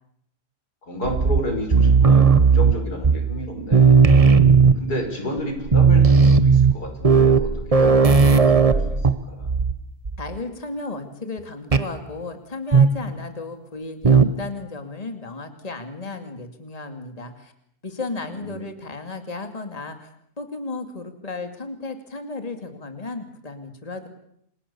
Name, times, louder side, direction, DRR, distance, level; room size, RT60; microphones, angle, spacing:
voice 1, 0.8-4.0 4.8-9.0 9.3-9.5 18.2-18.6, equal, 90° left, 4 dB, 6.8 m, -31 dB
sound 1, 1.1-3.5 3.7-5.0 5.4-5.5 5.7-9.8 10.1-10.4 11.7-12.0 12.7-13.1 14.0-14.5, right 5 dB, 25° right, 1.0 m, -16 dB
voice 2, 10.2-17.5 17.8-24.1, left 3 dB, 25° left, 7 dB, 2.6 m, -34 dB
29.5 x 26.0 x 7.1 m, 0.73 s
omnidirectional pair, 1.6 m